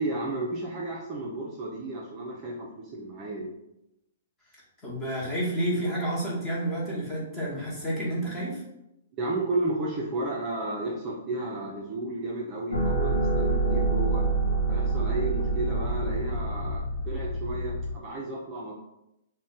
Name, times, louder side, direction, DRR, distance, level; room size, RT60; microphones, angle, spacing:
voice 1, 0.0-3.5 9.2-14.2 14.7-18.7, right 2 dB, 25° right, -4 dB, 0.5 m, -33 dB
voice 2, 4.8-8.6, right 1 dB, 15° left, -6 dB, 1.0 m, -30 dB
sound 1, 12.7-17.9, right 2 dB, 85° left, 0.7 m, -27 dB
2.5 x 2.1 x 3.8 m, 0.88 s
hypercardioid pair, 150°, 0 cm